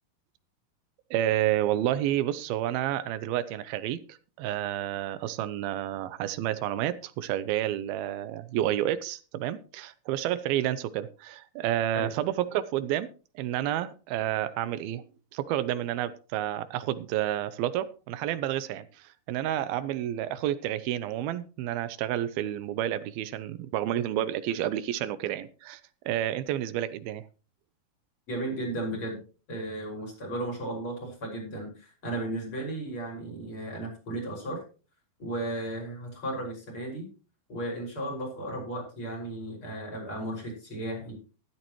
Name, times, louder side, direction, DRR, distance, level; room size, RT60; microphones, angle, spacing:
voice 1, 1.1-13.1 13.4-15.0 15.3-27.2, right 12 dB, 85° right, 14 dB, 2.5 m, -30 dB
voice 2, 28.3-29.2 29.5-34.6 35.2-37.1 37.5-41.2, right 1 dB, 35° left, -1 dB, 6.3 m, -35 dB
14.0 x 13.0 x 3.1 m, 0.36 s
omnidirectional pair, 4.3 m